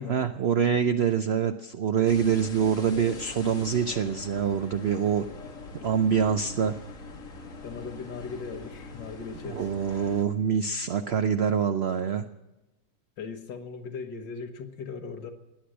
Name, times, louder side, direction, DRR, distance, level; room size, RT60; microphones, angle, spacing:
voice 1, 0.0-5.2 5.8-6.7 9.5-12.2, right 7 dB, 85° right, 9 dB, 0.5 m, -25 dB
sound 1, 2.1-10.2, left 3 dB, 50° left, 1.8 m, -43 dB
voice 2, 7.6-10.2 13.2-15.3, left 5 dB, 85° left, 6 dB, 1.9 m, -39 dB
17.0 x 10.0 x 6.3 m, 1.0 s
omnidirectional pair, 1.9 m